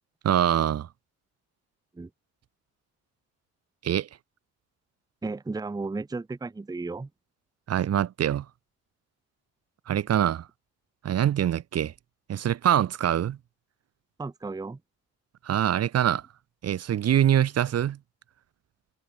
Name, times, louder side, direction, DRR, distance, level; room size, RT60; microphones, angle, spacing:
voice 1, 0.2-0.9 3.8-4.1 7.7-8.4 9.9-10.5 11.0-11.9 12.3-13.4 15.4-16.2 16.6-18.0, right 10 dB, 55° right, 1.0 m, -24 dB
voice 2, 5.2-7.1 14.2-14.8, right 3 dB, 15° right, 0.7 m, -34 dB
cardioid pair, 90°, 30 cm